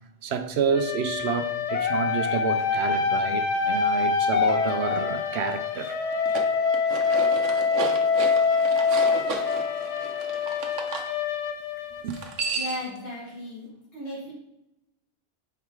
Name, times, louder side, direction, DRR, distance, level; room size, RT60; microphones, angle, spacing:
voice 1, 0.2-6.0 12.0-12.2, right 6 dB, 65° right, 9 dB, 0.8 m, -29 dB
sound 1, 0.7-12.5, left 5 dB, 70° left, 0.9 m, -25 dB
sound 2, 6.1-11.1 12.1-13.0, right 5 dB, 90° right, 1.1 m, -34 dB
voice 2, 12.5-13.7 13.9-14.3, equal, 55° left, -7 dB, 2.4 m, -35 dB
5.5 x 4.8 x 4.6 m, 0.86 s
omnidirectional pair, 1.2 m